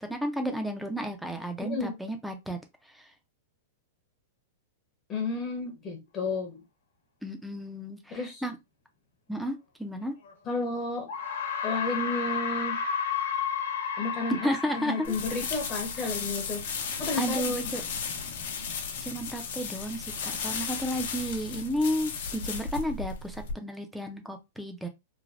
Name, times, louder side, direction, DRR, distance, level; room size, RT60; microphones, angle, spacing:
voice 1, 0.0-2.6 2.9-3.1 7.2-8.6 9.3-10.1 14.3-15.2 16.0-16.1 17.2-17.8 19.0-24.9, equal, ahead, 0.5 m, -32 dB
voice 2, 1.6-1.9 5.1-6.6 8.1-8.4 10.5-11.1 11.6-12.8 14.0-16.6 17.0-17.4, left 3 dB, 25° left, 0.8 m, -32 dB
sound 1, 10.3-10.4 11.1-16.3, left 7 dB, 85° left, 1.1 m, -32 dB
sound 2, 15.0-23.5, left 5 dB, 60° left, 0.8 m, -35 dB
3.2 x 2.2 x 2.5 m
hypercardioid pair, 150°, 0 cm